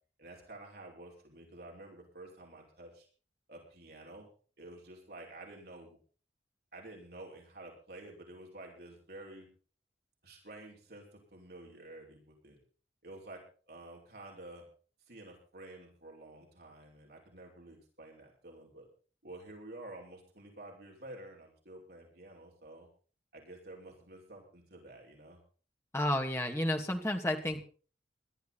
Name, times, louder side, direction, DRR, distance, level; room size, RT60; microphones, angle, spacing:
voice 1, 0.2-3.1 3.5-4.3 4.6-6.0 6.7-9.5 10.2-12.6 13.0-13.4 13.7-14.6 15.1-18.9 19.2-22.9 23.3-25.4, right 2 dB, 55° right, -1 dB, 5.3 m, -50 dB
voice 2, 25.9-27.6, left 1 dB, 15° left, 3 dB, 2.3 m, -31 dB
20.5 x 12.5 x 4.2 m, 0.40 s
head